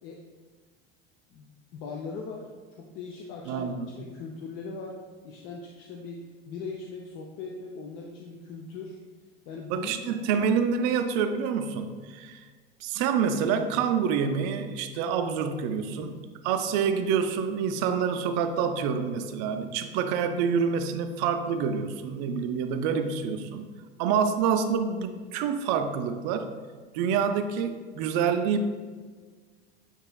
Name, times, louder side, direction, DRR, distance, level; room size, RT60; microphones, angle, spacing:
voice 1, 1.3-2.5 2.8-5.0 5.2-9.0 9.5-10.3, left 4 dB, 45° left, 0 dB, 0.5 m, -40 dB
voice 2, 3.5-3.9 9.7-12.4 12.8-23.7 24.0-26.5 26.9-28.7, right 6 dB, 50° right, 7 dB, 0.5 m, -27 dB
7.4 x 3.0 x 2.2 m, 1.5 s
figure-of-eight pair, 75°, 29 cm